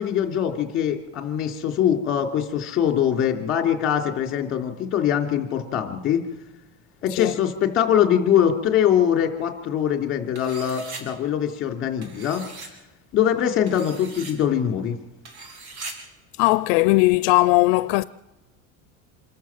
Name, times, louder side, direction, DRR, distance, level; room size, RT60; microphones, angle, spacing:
voice 1, 0.0-6.2 7.0-12.4 13.1-15.0, left 9 dB, 35° left, 3.2 m, -22 dB
sound 1, 10.3-11.0 12.0-12.7 13.7-14.3 15.2-15.9, right 3 dB, 60° right, 4.9 m, -39 dB
voice 2, 16.4-18.0, left 21 dB, 80° left, 0.6 m, -18 dB
26.5 x 14.0 x 7.4 m
cardioid pair, 155°, 35 cm